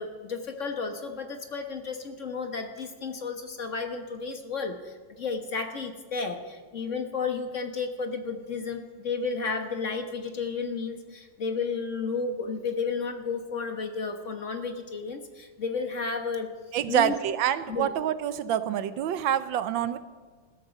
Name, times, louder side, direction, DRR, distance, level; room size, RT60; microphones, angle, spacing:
voice 1, 0.0-16.5 16.9-17.2 17.7-17.9, left 4 dB, 45° left, 5 dB, 1.4 m, -32 dB
voice 2, 16.7-20.0, right 10 dB, 80° right, 13 dB, 1.5 m, -26 dB
21.0 x 13.0 x 5.2 m, 1.4 s
omnidirectional pair, 2.1 m